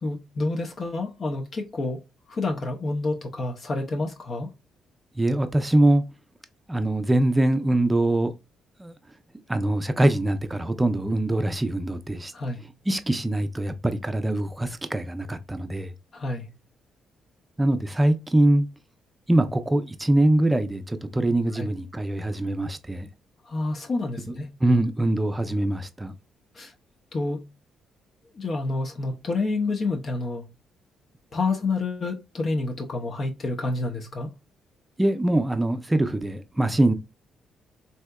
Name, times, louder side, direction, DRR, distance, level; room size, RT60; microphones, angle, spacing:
voice 1, 0.0-2.0 2.3-4.5 12.3-12.6 16.1-16.5 21.5-21.7 23.5-24.5 26.5-26.7 27.1-27.5 28.3-30.4 31.3-34.3, left 3 dB, 45° left, 0.6 m, -28 dB
voice 2, 5.2-6.0 6.7-8.3 8.8-8.9 9.5-12.3 12.9-15.9 17.6-18.7 19.3-23.1 24.6-26.1 35.0-36.9, right 1 dB, 15° right, 0.5 m, -23 dB
3.4 x 2.7 x 2.2 m
cardioid pair, 90°, 0 cm